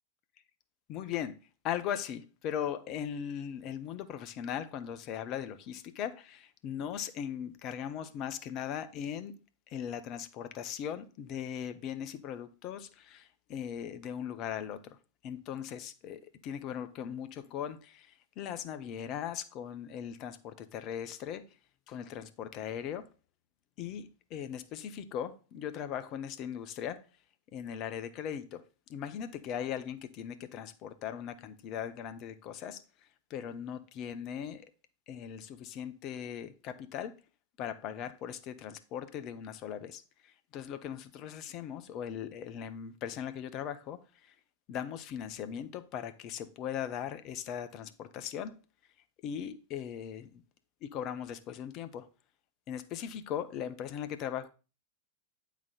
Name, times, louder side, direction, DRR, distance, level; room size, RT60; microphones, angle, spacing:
voice 1, 0.9-1.4 1.6-9.3 9.7-15.0 15.2-21.5 21.9-23.1 23.8-27.0 27.5-28.6 28.9-32.8 33.3-34.6 35.1-37.2 37.6-44.3 44.7-48.6 49.2-50.4 50.8-52.1 52.7-54.5, left 9 dB, 40° left, 0.7 m, -39 dB
8.7 x 4.1 x 4.1 m
figure-of-eight pair, 90°, 0 cm